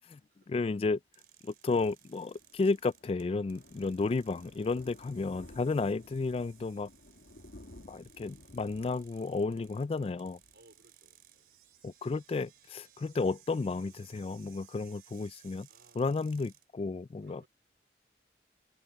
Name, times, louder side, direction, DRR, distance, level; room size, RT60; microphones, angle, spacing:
voice 1, 0.5-1.0 1.4-6.9 7.9-10.4 11.8-15.7 16.0-17.5, left 3 dB, 35° left, 0.3 m, -32 dB
sound 1, 1.1-16.7, right 12 dB, 55° right, 3.9 m, -61 dB
Thunder, 2.0-11.4 11.7-12.0 12.3-12.4 12.6-12.7, left 1 dB, 80° left, 1.7 m, -56 dB
voice 2, 10.5-11.6 15.7-16.1 17.2-17.5, right 2 dB, 70° right, 4.1 m, -63 dB
head